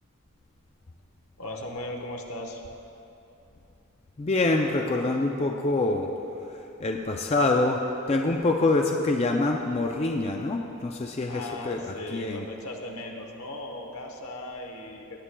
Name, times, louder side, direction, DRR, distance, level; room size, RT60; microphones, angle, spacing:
voice 1, 1.4-2.6 11.3-15.2, left 1 dB, 75° left, 2 dB, 1.0 m, -37 dB
voice 2, 4.2-6.1 6.8-7.8 8.1-12.4, left 2 dB, 30° left, 2 dB, 0.4 m, -25 dB
18.0 x 10.0 x 2.3 m, 2.8 s
head